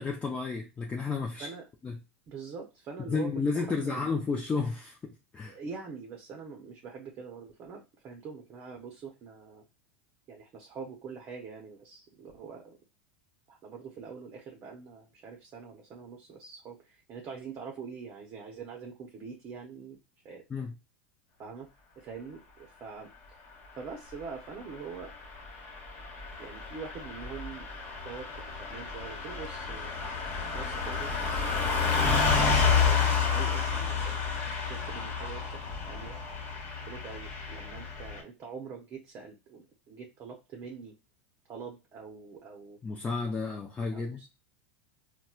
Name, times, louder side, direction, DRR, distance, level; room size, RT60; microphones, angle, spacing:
voice 1, 0.0-1.5 1.8-2.0 3.1-5.6 20.5-20.7 32.1-32.2 42.8-44.2, left 4 dB, 20° left, 0.6 m, -32 dB
voice 2, 2.3-4.1 5.4-9.6 10.3-12.8 13.5-20.0 20.2-20.4 21.4-21.7 22.0-23.1 23.7-25.1 26.4-27.7 28.0-30.1 30.5-31.1 31.9-34.3 34.6-35.6 35.9-36.2 36.9-40.9 41.5-42.8 43.9-44.3, right 5 dB, 40° right, 0.8 m, -44 dB
Car passing by / Truck, 25.2-38.2, left 5 dB, 45° left, 1.4 m, -30 dB
4.1 x 2.2 x 2.3 m
hypercardioid pair, 100°, 7 cm